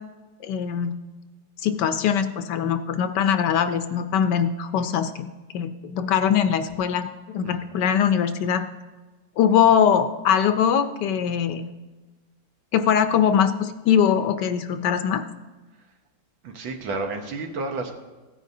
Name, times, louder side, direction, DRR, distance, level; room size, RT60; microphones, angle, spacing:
voice 1, 0.4-0.9 1.6-7.1 7.3-8.7 9.4-11.7 12.7-15.2, left 8 dB, 70° left, 9 dB, 1.1 m, -22 dB
voice 2, 16.4-18.0, right 3 dB, 85° right, 3 dB, 2.0 m, -31 dB
16.5 x 9.3 x 2.7 m, 1.2 s
omnidirectional pair, 2.1 m